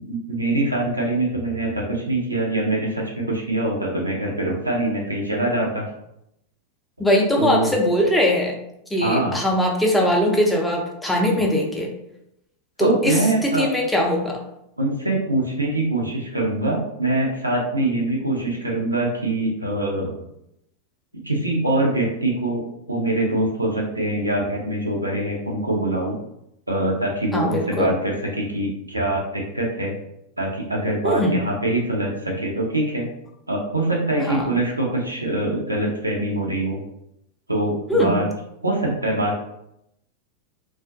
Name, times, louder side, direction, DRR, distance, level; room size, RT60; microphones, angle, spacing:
voice 1, 0.1-5.8 7.4-7.7 9.0-9.4 12.8-13.7 14.8-20.1 21.2-22.6 22.9-26.2 26.7-29.9 30.4-33.1 33.5-36.8 37.5-38.3 38.6-39.4, right 1 dB, 85° right, -1 dB, 0.5 m, -24 dB
voice 2, 7.0-8.6 8.9-11.9 12.8-14.4 27.3-27.9 31.0-31.3 34.3-34.5 37.9-38.2, equal, 5° left, -1 dB, 0.5 m, -21 dB
2.4 x 2.3 x 2.4 m, 0.81 s
figure-of-eight pair, 90°, 0 cm